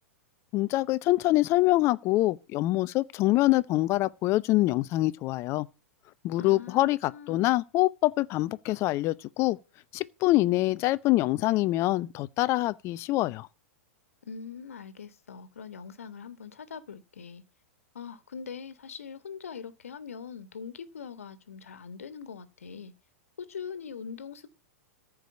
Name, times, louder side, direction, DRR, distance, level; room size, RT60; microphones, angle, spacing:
voice 1, 0.5-5.7 6.2-9.6 9.9-13.5, left 18 dB, 35° left, 0.7 m, -25 dB
voice 2, 6.4-7.4 14.2-17.4 17.9-22.9 23.4-24.5, left 6 dB, 75° left, 1.6 m, -42 dB
14.0 x 5.0 x 8.1 m
hypercardioid pair, 105°, 8 cm